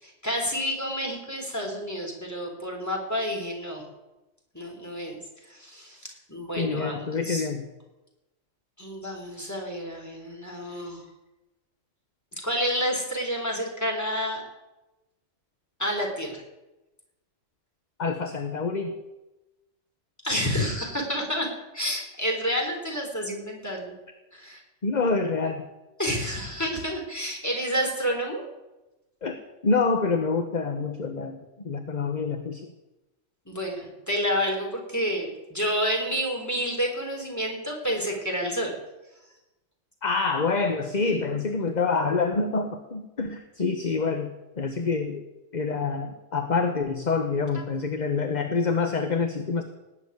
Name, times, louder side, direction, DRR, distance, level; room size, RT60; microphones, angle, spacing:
voice 1, 0.0-3.8 4.5-5.2 5.4-7.5 8.8-11.0 12.3-14.4 15.8-16.4 20.2-21.5 21.7-23.9 24.3-24.6 26.0-28.4 33.5-38.7, equal, 15° left, 1 dB, 3.8 m, -29 dB
voice 2, 6.6-7.6 18.0-19.0 24.8-25.6 29.2-32.7 40.0-45.2 45.5-49.6, left 4 dB, 35° left, 6 dB, 1.2 m, -27 dB
18.5 x 7.5 x 9.7 m, 1.0 s
omnidirectional pair, 1.3 m